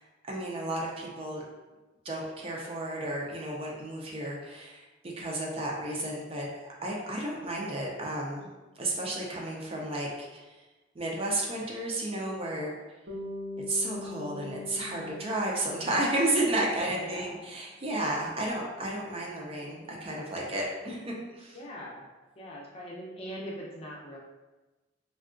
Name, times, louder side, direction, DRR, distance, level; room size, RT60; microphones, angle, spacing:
voice 1, 0.2-1.4 2.0-4.8 5.2-10.4 11.0-12.7 13.7-21.6, right 1 dB, 30° right, -2 dB, 0.4 m, -32 dB
Bass guitar, 13.1-17.3, left 2 dB, 80° right, 0.6 m, -42 dB
voice 2, 16.9-17.5 21.5-22.1 22.4-24.2, equal, 30° left, -4 dB, 0.6 m, -41 dB
3.5 x 2.2 x 2.4 m, 1.2 s
head